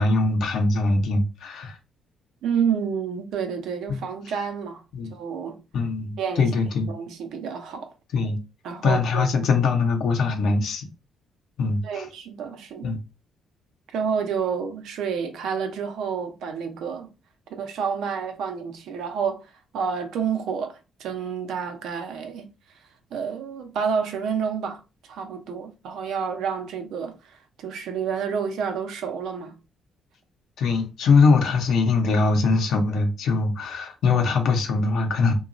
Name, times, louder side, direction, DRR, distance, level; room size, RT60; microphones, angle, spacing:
voice 1, 0.0-1.8 3.9-4.0 4.9-5.1 5.7-6.9 8.1-8.4 8.8-10.9 11.6-12.1 12.8-13.0 30.6-35.3, left 4 dB, 75° left, 0.7 m, -22 dB
voice 2, 2.4-4.8 5.1-5.6 6.2-6.5 6.9-7.9 8.6-9.5 11.8-13.0 13.9-17.1 17.5-19.4 19.7-22.5 23.1-24.8 25.1-29.5, right 6 dB, 80° right, 0.6 m, -29 dB
2.9 x 2.3 x 2.5 m
cardioid pair, 90°, 0 cm